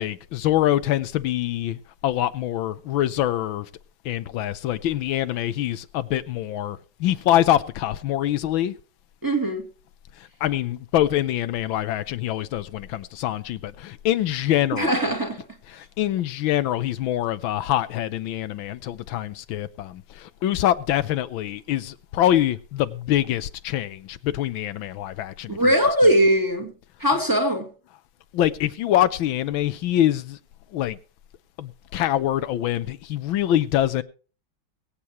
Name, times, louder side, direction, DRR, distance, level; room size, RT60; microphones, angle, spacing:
voice 1, 0.0-1.8 2.0-3.7 4.0-8.8 10.2-15.1 15.7-25.7 28.3-30.4 30.7-31.0 31.6-34.0, left 12 dB, 85° left, 1.5 m, -24 dB
voice 2, 9.2-9.6 14.7-15.4 25.5-26.7 27.0-27.7, equal, 10° right, 2.2 m, -20 dB
22.5 x 8.6 x 3.0 m
omnidirectional pair, 2.1 m